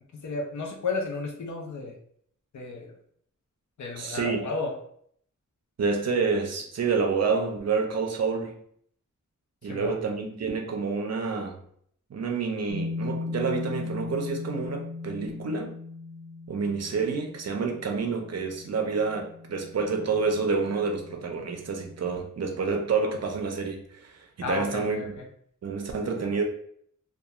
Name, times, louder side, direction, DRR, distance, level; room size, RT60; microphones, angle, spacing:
voice 1, 0.1-2.0 2.5-2.9 3.8-4.7 9.7-10.0 24.4-25.3, left 3 dB, 65° left, 1 dB, 0.6 m, -32 dB
voice 2, 4.0-4.4 5.8-8.6 9.6-11.5 12.1-15.7 16.5-25.2 25.6-26.4, right 4 dB, 55° right, 3 dB, 0.5 m, -28 dB
sound 1, 12.7-22.2, left 3 dB, 30° left, 0.9 m, -38 dB
2.3 x 2.3 x 2.9 m, 0.64 s
wide cardioid pair, 115°, 32 cm